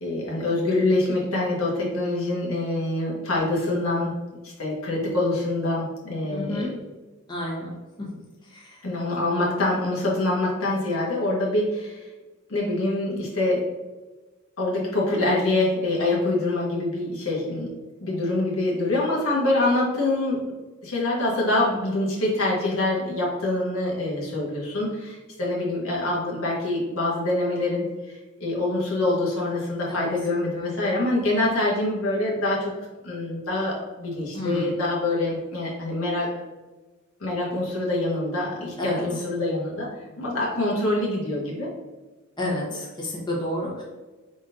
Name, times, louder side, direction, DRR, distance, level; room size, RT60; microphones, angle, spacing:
voice 1, 0.0-4.1 4.4-6.7 8.8-12.1 12.5-13.7 14.6-17.7 18.0-20.5 20.8-32.7 33.0-36.4 37.2-39.9 40.2-41.7, left 2 dB, 80° left, -4 dB, 1.4 m, -25 dB
voice 2, 6.3-6.7 7.3-7.7 8.5-8.8 29.9-30.1 34.3-34.7 38.8-39.1 42.4-43.8, left 1 dB, 20° left, -4 dB, 1.0 m, -30 dB
5.1 x 3.8 x 2.6 m, 1.2 s
head